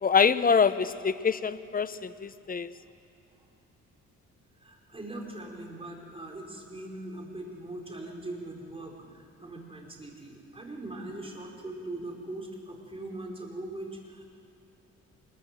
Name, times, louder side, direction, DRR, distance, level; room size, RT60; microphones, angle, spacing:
voice 1, 0.0-2.7, left 6 dB, 30° left, 0.8 m, -25 dB
voice 2, 4.6-14.2, right 2 dB, 20° right, 4.8 m, -41 dB
25.5 x 21.5 x 7.8 m
cardioid pair, 90°, 30 cm